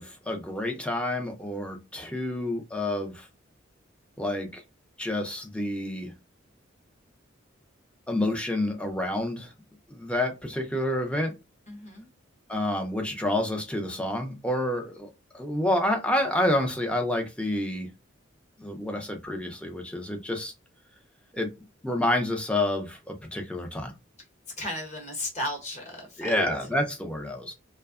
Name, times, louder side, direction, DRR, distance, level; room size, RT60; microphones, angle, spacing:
voice 1, 0.0-3.3 4.2-4.6 5.0-6.1 8.1-9.5 9.9-11.3 12.5-17.9 18.6-20.5 21.3-21.5 21.8-23.9 26.2-27.5, left 1 dB, 5° left, 0.4 m, -28 dB
voice 2, 11.7-12.1 24.6-26.3, left 1 dB, 35° left, 1.0 m, -34 dB
2.6 x 2.1 x 2.4 m
head